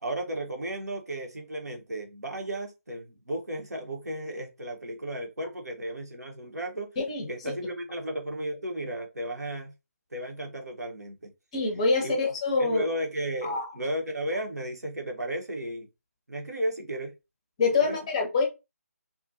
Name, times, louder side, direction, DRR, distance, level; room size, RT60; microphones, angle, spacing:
voice 1, 0.0-6.9 7.3-9.7 10.1-11.3 12.0-12.1 12.6-15.9 16.3-17.1 17.8-18.0, right 1 dB, 75° right, 0.8 m, -34 dB
voice 2, 7.0-7.3 11.5-12.8 13.4-13.7 17.6-18.4, left 4 dB, 25° left, 0.6 m, -25 dB
2.4 x 2.2 x 2.5 m
figure-of-eight pair, 150°, 9 cm